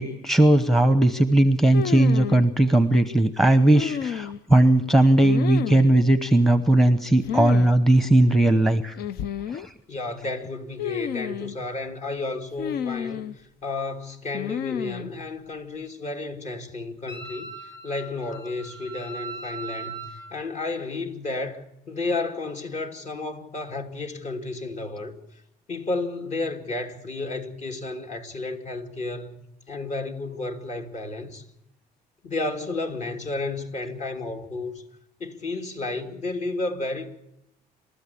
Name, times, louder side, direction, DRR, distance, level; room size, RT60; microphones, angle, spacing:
voice 1, 0.0-9.0 9.5-9.7, right 1 dB, ahead, 1.0 m, -18 dB
sound 1, 1.7-2.4 3.7-4.6 5.2-5.9 7.2-7.7 8.0-8.1 9.0-9.7 10.8-11.5 12.6-13.3 14.3-15.1, left 9 dB, 70° left, 0.7 m, -30 dB
voice 2, 9.9-25.2 25.7-29.4 29.7-31.4 32.2-34.8 35.2-37.1, left 2 dB, 45° left, 2.7 m, -32 dB
Wind instrument woodwind instrument, 17.1-20.3, right 4 dB, 20° left, 5.3 m, -39 dB
28.5 x 13.5 x 8.5 m
cardioid pair, 110°, 17 cm